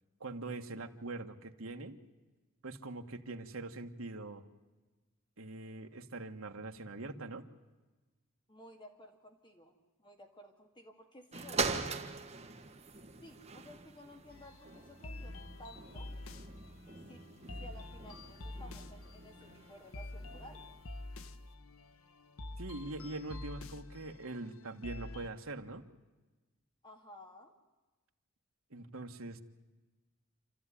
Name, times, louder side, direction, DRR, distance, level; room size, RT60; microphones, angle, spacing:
voice 1, 0.2-2.0 2.6-4.4 5.4-7.4 22.6-25.8 28.7-29.4, right 2 dB, 70° right, 5 dB, 1.6 m, -43 dB
voice 2, 8.5-11.8 13.2-16.1 17.1-17.2 17.5-20.8 26.8-27.5, equal, 20° left, 3 dB, 2.2 m, -55 dB
sound 1, 11.3-20.9 21.5-21.6, right 4 dB, 30° right, 1.8 m, -42 dB
sound 2, 14.3-25.3, left 2 dB, 75° left, 1.1 m, -47 dB
28.0 x 14.0 x 10.0 m, 1.2 s
head